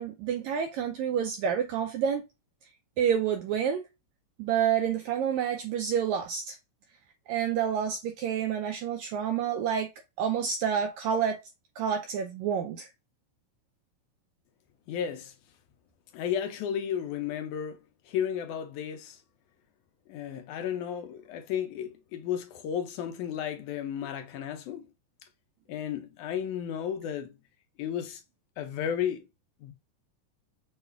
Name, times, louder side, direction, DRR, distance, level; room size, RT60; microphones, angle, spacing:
voice 1, 0.0-2.2 3.0-3.8 4.4-6.6 7.3-9.9 10.2-11.4 11.8-12.9, right 8 dB, 85° right, 1.6 m, -28 dB
voice 2, 14.9-15.3 16.1-17.8 18.1-19.2 20.1-24.9 25.7-27.3 27.8-28.2 28.6-29.3 29.6-29.7, left 9 dB, 80° left, 1.9 m, -33 dB
6.5 x 2.3 x 3.4 m
omnidirectional pair, 3.8 m